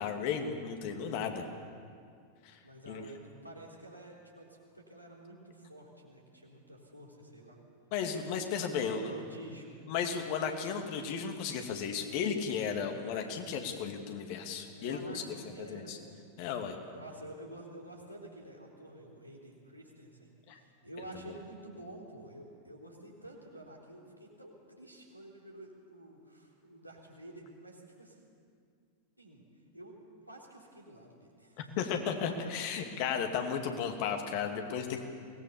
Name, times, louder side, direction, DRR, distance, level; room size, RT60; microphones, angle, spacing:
voice 1, 0.0-1.5 2.4-2.6 2.9-3.0 7.9-9.0 9.9-16.0 16.4-16.8 20.5-20.6 31.6-35.0, left 7 dB, 45° left, 4 dB, 2.3 m, -34 dB
voice 2, 2.6-7.6 8.7-9.8 14.7-16.1 16.8-28.2 29.2-29.4 29.7-30.0 30.3-31.9, right 1 dB, 90° right, -2 dB, 3.7 m, -50 dB
23.0 x 19.0 x 7.0 m, 2.3 s
figure-of-eight pair, 90°, 0 cm